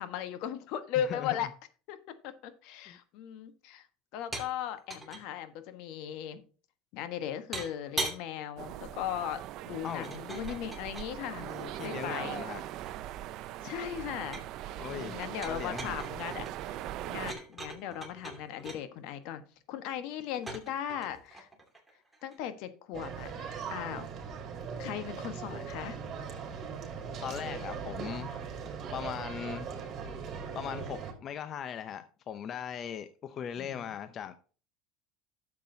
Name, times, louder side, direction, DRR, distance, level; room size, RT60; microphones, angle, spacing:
voice 1, 0.0-1.5 1.9-2.0 2.2-3.9 4.1-6.4 6.9-9.4 9.7-12.4 13.6-16.8 17.1-19.4 19.7-21.5 22.2-24.1 24.8-26.0 33.4-33.9, left 10 dB, 65° left, 1.3 m, -38 dB
voice 2, 1.0-1.4 2.9-3.0 9.8-10.1 11.4-12.6 14.8-16.0 27.2-28.3 28.9-29.7 30.5-34.3, left 8 dB, 45° left, 0.7 m, -39 dB
sound 1, 4.3-4.5 4.8-5.2 7.5-8.2 10.0-11.1 12.1-13.4 13.7-14.6 15.1-18.8 20.3-22.4, right 2 dB, 5° right, 2.6 m, -41 dB
sound 2, 8.6-17.3, right 13 dB, 55° right, 0.5 m, -40 dB
sound 3, 22.9-31.1, right 6 dB, 40° right, 3.2 m, -39 dB
11.5 x 7.4 x 2.8 m
supercardioid pair, 105°, 0 cm